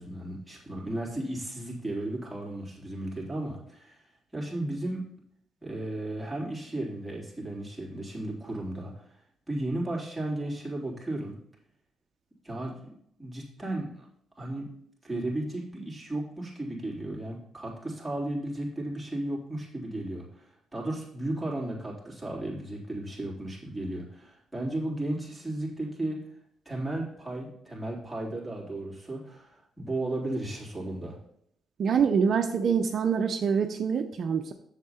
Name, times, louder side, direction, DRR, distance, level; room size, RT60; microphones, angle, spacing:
voice 1, 0.0-4.0 4.3-5.0 5.6-8.9 9.5-11.3 12.4-12.8 13.2-14.1 14.4-14.7 15.0-20.5 20.7-26.2 26.7-29.5 29.8-31.2, right 1 dB, ahead, -5 dB, 3.5 m, -34 dB
voice 2, 31.8-34.5, right 6 dB, 55° right, 6 dB, 0.6 m, -25 dB
7.5 x 7.4 x 4.3 m, 0.72 s
cardioid pair, 90°, 0 cm